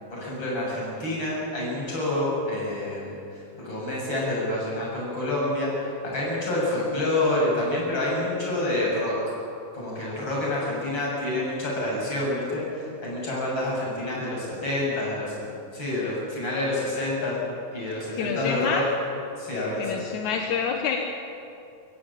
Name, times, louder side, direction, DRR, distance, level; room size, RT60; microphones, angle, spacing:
voice 1, 0.0-9.2 9.7-15.3 15.7-17.4 17.7-18.8 19.4-20.0, left 1 dB, 40° left, -4 dB, 8.1 m, -28 dB
voice 2, 18.2-18.8 19.8-21.0, left 6 dB, 80° left, 2 dB, 2.6 m, -27 dB
24.0 x 16.5 x 9.0 m, 2.7 s
omnidirectional pair, 3.4 m